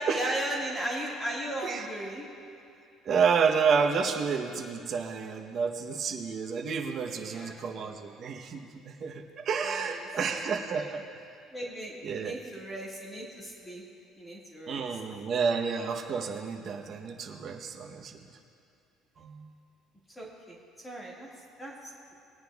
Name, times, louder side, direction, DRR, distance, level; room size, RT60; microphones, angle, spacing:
voice 1, 0.0-2.3 7.1-7.6 9.6-10.5 10.8-11.0 11.5-13.8 14.2-14.8 20.2-20.6 20.8-21.3 21.6-22.1, right 1 dB, 15° left, -4 dB, 1.9 m, -37 dB
voice 2, 3.1-11.0 12.0-12.4 14.7-18.2 19.2-19.5, right 6 dB, 45° right, 4 dB, 0.9 m, -30 dB
20.5 x 9.7 x 2.4 m, 2.5 s
cardioid pair, 125°, 0 cm